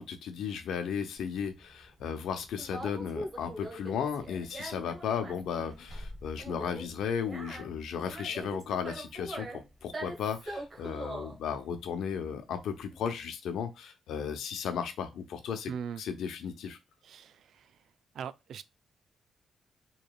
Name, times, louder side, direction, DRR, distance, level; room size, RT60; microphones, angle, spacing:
voice 1, 0.0-15.7 16.0-16.8, left 7 dB, 90° left, 0.8 m, -35 dB
Conversation, 1.2-13.1, right 1 dB, 30° right, 1.2 m, -43 dB
voice 2, 15.7-16.0 17.0-17.8 18.1-18.6, right 7 dB, 75° right, 0.3 m, -40 dB
4.8 x 3.2 x 2.4 m
cardioid pair, 115°, 0 cm